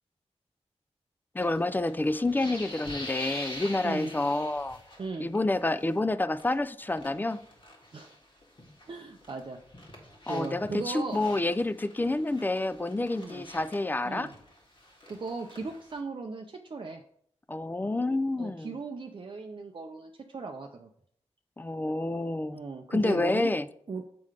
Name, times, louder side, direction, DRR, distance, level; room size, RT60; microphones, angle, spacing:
voice 1, 1.3-4.8 5.2-7.4 10.3-14.3 17.5-18.8 21.6-22.6 22.9-23.7, left 2 dB, 15° left, 0.3 m, -28 dB
sound 1, 1.4-5.4 5.6-5.9 6.3-8.9 9.2-16.0, left 1 dB, 45° left, 1.7 m, -45 dB
voice 2, 8.9-9.6 10.3-11.3 13.2-13.4 14.1-14.3 15.1-17.0 18.4-20.9 22.5-23.5 23.9-24.0, right 4 dB, 45° right, 0.5 m, -37 dB
7.6 x 3.8 x 4.8 m
wide cardioid pair, 85°, 12 cm